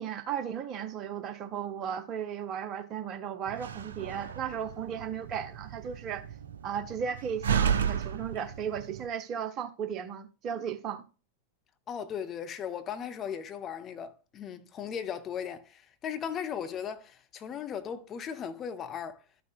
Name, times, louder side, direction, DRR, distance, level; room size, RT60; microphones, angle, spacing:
voice 1, 0.0-6.2 6.6-11.0, right 8 dB, 35° right, 0.8 m, -35 dB
Slam, 3.5-9.1, right 7 dB, 65° right, 0.5 m, -33 dB
voice 2, 11.9-19.2, left 8 dB, 30° left, 0.7 m, -37 dB
12.5 x 5.9 x 2.4 m
figure-of-eight pair, 90°, 0 cm